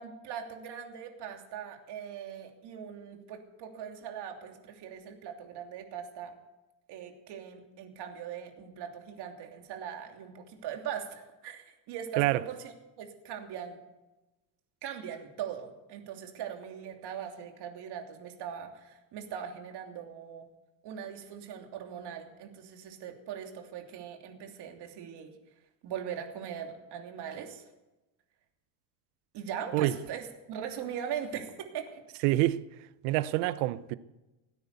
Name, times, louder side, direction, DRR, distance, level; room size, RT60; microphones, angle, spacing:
voice 1, 0.0-6.3 6.9-13.8 14.8-20.4 20.8-25.3 25.8-27.6 29.3-32.0, right 8 dB, 60° right, 3.0 m, -40 dB
voice 2, 32.2-32.6 33.0-34.0, right 17 dB, 90° right, 0.9 m, -26 dB
17.5 x 9.7 x 8.3 m
cardioid pair, 130°, 46 cm